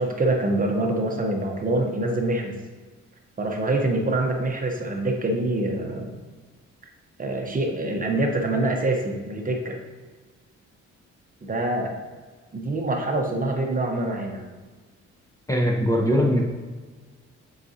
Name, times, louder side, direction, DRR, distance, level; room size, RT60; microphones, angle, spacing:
voice 1, 0.0-2.5 3.4-6.1 7.2-9.8 11.4-12.0 12.5-14.4, right 2 dB, 30° right, 2 dB, 0.9 m, -25 dB
voice 2, 15.5-16.4, equal, 10° left, 0 dB, 0.7 m, -21 dB
7.4 x 4.8 x 2.8 m, 1.4 s
cardioid pair, 90°, 30 cm